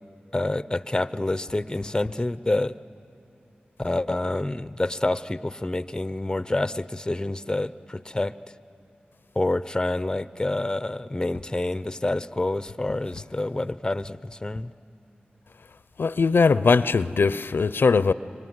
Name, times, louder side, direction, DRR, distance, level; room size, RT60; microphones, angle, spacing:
voice 1, 0.3-2.7 3.8-8.3 9.4-14.7, left 2 dB, 20° left, 0.6 m, -27 dB
voice 2, 16.0-18.1, left 4 dB, 75° left, 0.5 m, -20 dB
24.5 x 24.0 x 9.5 m
wide cardioid pair, 55°, 4 cm